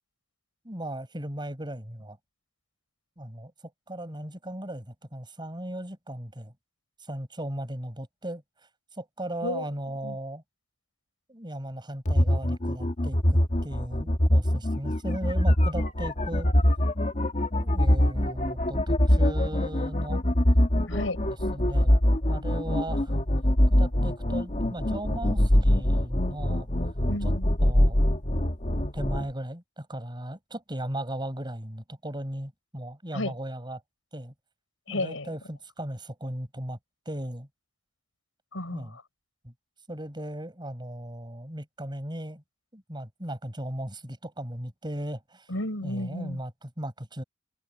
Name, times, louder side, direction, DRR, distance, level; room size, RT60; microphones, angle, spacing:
voice 1, 0.6-2.2 3.2-3.5 3.9-6.5 7.1-8.4 9.0-10.4 11.3-16.5 17.6-20.2 21.5-21.9 22.3-23.2 23.7-26.7 27.6-28.0 28.9-33.8 34.1-34.3 34.9-36.8 37.1-37.5 38.7-39.0 39.4-39.5 39.9-42.4 42.7-45.5 45.8-47.2, right 1 dB, 25° right, 7.2 m, -37 dB
sound 1, 12.0-29.3, left 1 dB, 35° left, 1.9 m, -23 dB
voice 2, 20.9-21.2 27.1-27.6 33.1-33.3 34.9-35.3 38.5-39.0 45.5-46.4, left 1 dB, 85° left, 6.3 m, -32 dB
head